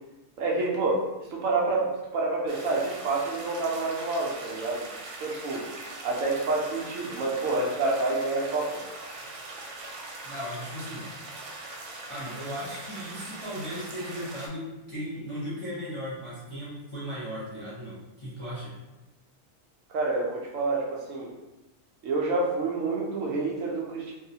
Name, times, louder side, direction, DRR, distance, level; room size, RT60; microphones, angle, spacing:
voice 1, 0.4-1.1 1.3-4.9 5.2-5.7 6.0-8.8 19.9-21.3 22.0-24.1, right 3 dB, 65° right, -2 dB, 0.9 m, -28 dB
sound 1, 2.5-14.5, right 2 dB, 90° right, 1.1 m, -41 dB
voice 2, 10.2-11.1 12.1-18.7, equal, 25° left, -11 dB, 0.7 m, -37 dB
3.0 x 2.0 x 2.7 m, 1.0 s
omnidirectional pair, 1.6 m